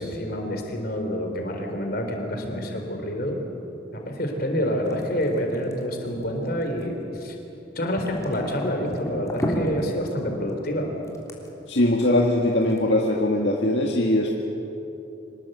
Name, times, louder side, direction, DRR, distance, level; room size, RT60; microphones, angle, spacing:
voice 1, 0.0-3.4 3.9-7.4 7.8-10.9, equal, 55° left, 3 dB, 3.9 m, -28 dB
sound 1, 4.9-7.6 7.9-12.8, equal, 15° left, 3.4 m, -33 dB
voice 2, 11.7-14.3, left 1 dB, 75° left, 0 dB, 1.9 m, -21 dB
25.0 x 20.0 x 8.1 m, 2.9 s
head